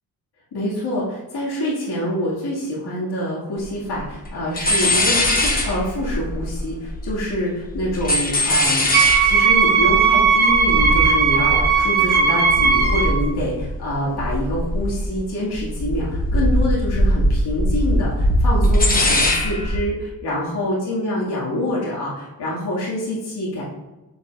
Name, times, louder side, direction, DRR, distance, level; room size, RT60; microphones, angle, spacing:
voice 1, 0.5-8.9 9.2-23.6, left 1 dB, 85° left, -7 dB, 2.2 m, -26 dB
sound 1, 3.6-3.7 3.9-4.3 4.6-7.3 7.6-13.9 14.2-15.2 15.5-19.8, left 1 dB, 20° left, 1.0 m, -21 dB
Wind instrument woodwind instrument, 8.9-13.2, right 6 dB, 25° right, 1.3 m, -17 dB
7.2 x 6.9 x 2.5 m, 1.1 s
wide cardioid pair, 155°, 39 cm